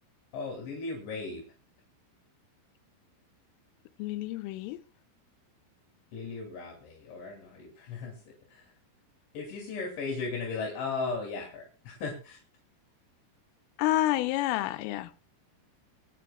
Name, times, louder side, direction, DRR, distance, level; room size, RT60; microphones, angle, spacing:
voice 1, 0.3-1.4 6.1-8.2 8.5-8.7 9.3-12.4, left 4 dB, 70° left, 5.1 m, -36 dB
voice 2, 4.0-4.8 13.8-15.3, left 15 dB, 90° left, 3.4 m, -29 dB
26.0 x 10.0 x 2.3 m
omnidirectional pair, 5.7 m